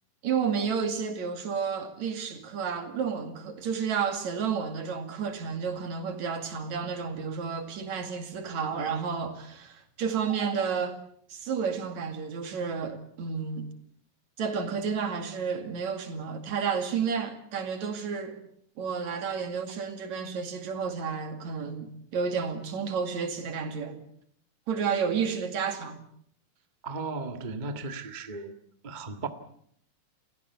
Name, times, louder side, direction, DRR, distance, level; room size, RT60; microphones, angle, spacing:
voice 1, 0.2-11.0 11.3-13.7 14.4-18.4 18.8-24.0 24.7-26.0, right 6 dB, 55° right, 3.5 m, -31 dB
voice 2, 26.8-28.5 28.8-29.3, right 3 dB, 40° right, 0.6 m, -35 dB
29.0 x 16.0 x 8.3 m
omnidirectional pair, 3.9 m